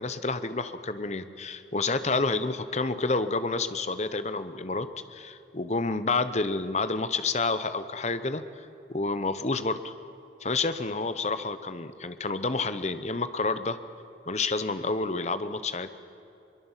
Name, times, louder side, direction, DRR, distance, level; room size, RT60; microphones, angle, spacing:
voice 1, 0.0-8.4 8.9-9.9 10.4-13.8 14.3-15.9, left 3 dB, 35° left, 11 dB, 0.9 m, -29 dB
22.5 x 22.5 x 7.4 m, 2.8 s
head